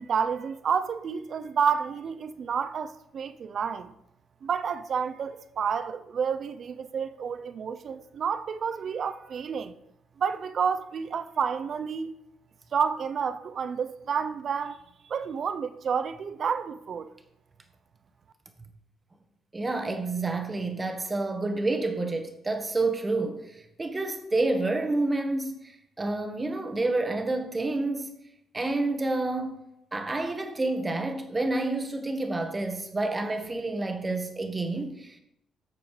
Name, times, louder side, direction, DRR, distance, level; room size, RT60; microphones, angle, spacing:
voice 1, 0.0-3.9 4.4-9.7 10.2-12.1 12.7-14.8 15.1-17.1, right 6 dB, 55° right, 0.7 m, -30 dB
voice 2, 19.5-28.1 28.5-29.5 29.9-35.2, right 2 dB, 20° right, 1.6 m, -29 dB
11.0 x 6.8 x 5.0 m
cardioid pair, 90°, 0 cm